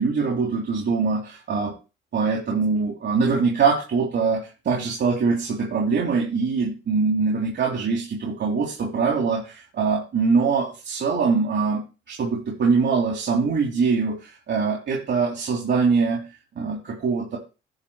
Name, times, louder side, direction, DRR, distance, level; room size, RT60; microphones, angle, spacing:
voice 1, 0.0-1.7 2.1-11.8 12.1-16.3 16.6-17.4, right 4 dB, 60° right, -1 dB, 3.1 m, -23 dB
10.5 x 3.9 x 7.1 m, 0.30 s
cardioid pair, 90°, 20 cm